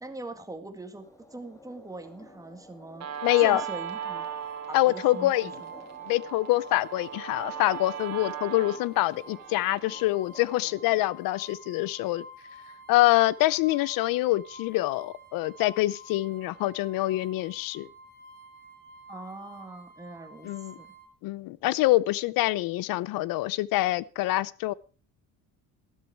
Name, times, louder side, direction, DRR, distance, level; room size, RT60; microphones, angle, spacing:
voice 1, 0.0-3.1 3.4-4.3 4.7-5.7 19.1-20.9, right 2 dB, 10° right, 1.7 m, -42 dB
sound 1, 0.9-11.1, left 1 dB, 10° left, 1.7 m, -53 dB
Guitar, 3.0-10.0, right 9 dB, 50° right, 1.9 m, -38 dB
sound 2, 3.1-21.1, right 1 dB, 30° left, 4.1 m, -50 dB
voice 2, 3.2-3.6 4.7-5.5 6.1-12.2 12.9-17.9 20.4-20.7 21.2-24.7, left 17 dB, 90° left, 0.7 m, -25 dB
13.5 x 12.5 x 4.5 m
cardioid pair, 145°, 33 cm